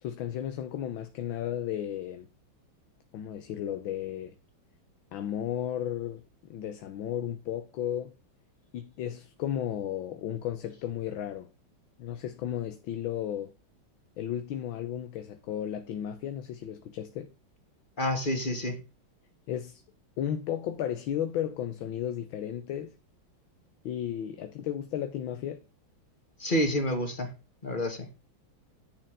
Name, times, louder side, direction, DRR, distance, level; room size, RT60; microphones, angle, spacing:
voice 1, 0.0-2.3 3.1-4.4 5.1-6.2 6.5-8.1 8.7-11.5 12.0-13.5 14.2-17.3 19.5-19.8 20.2-23.0 23.8-25.6, left 10 dB, 75° left, 1.6 m, -34 dB
voice 2, 18.0-18.8 26.4-27.3 27.6-28.1, left 1 dB, 25° left, 1.9 m, -28 dB
10.0 x 4.4 x 6.7 m
omnidirectional pair, 2.3 m